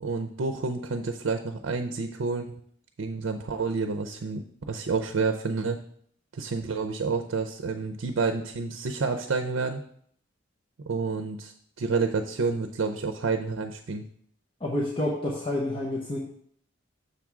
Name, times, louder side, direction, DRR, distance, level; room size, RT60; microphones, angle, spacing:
voice 1, 0.0-2.5 3.0-5.8 6.3-9.8 10.9-14.0, right 4 dB, 90° right, 6 dB, 0.5 m, -29 dB
voice 2, 14.6-16.2, left 1 dB, 25° left, -5 dB, 1.0 m, -28 dB
6.8 x 3.6 x 6.0 m, 0.64 s
head